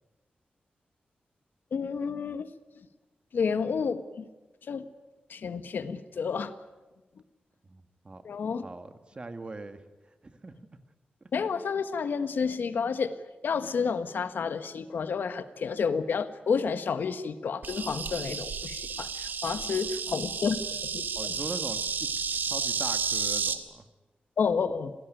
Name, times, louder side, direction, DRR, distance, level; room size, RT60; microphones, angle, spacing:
voice 1, 1.7-2.5 2.8-2.9 3.3-4.2 4.7-4.9 5.3-6.5 8.2-8.6 11.3-13.2 13.4-21.3 24.4-24.9, left 5 dB, 80° left, 11 dB, 1.4 m, -30 dB
voice 2, 7.7-8.2 8.6-9.8 10.2-10.5 11.2-11.3 21.2-21.9 22.3-23.9, right 2 dB, 30° right, 9 dB, 1.7 m, -41 dB
Insect, 17.6-23.6, right 6 dB, 70° right, 1.9 m, -32 dB
26.5 x 18.0 x 9.2 m, 1.2 s
wide cardioid pair, 130°, 3 cm